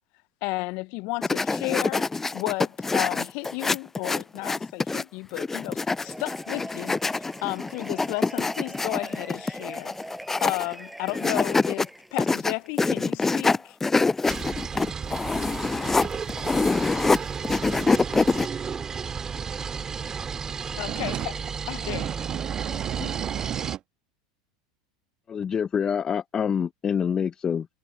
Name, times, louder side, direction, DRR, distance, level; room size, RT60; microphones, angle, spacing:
voice 1, 0.4-7.0 7.4-9.9 10.4-13.8 20.8-21.3 21.7-22.1, left 26 dB, 60° left, 0.9 m, -33 dB
sound 1, 1.2-5.0 5.4-10.7 11.1-11.9 12.2-17.2 17.4-18.5, left 3 dB, 15° left, 0.4 m, -25 dB
Cheering / Applause / Crowd, 5.9-12.7, right 1 dB, 5° right, 7.6 m, -42 dB
sound 2, 14.3-23.8, right 6 dB, 25° right, 3.3 m, -33 dB
voice 2, 20.9-21.3 21.8-23.8, right 12 dB, 40° right, 1.6 m, -33 dB
voice 3, 22.7-23.1 25.3-27.7, left 7 dB, 30° left, 1.0 m, -27 dB
hypercardioid pair, 85°, 2 cm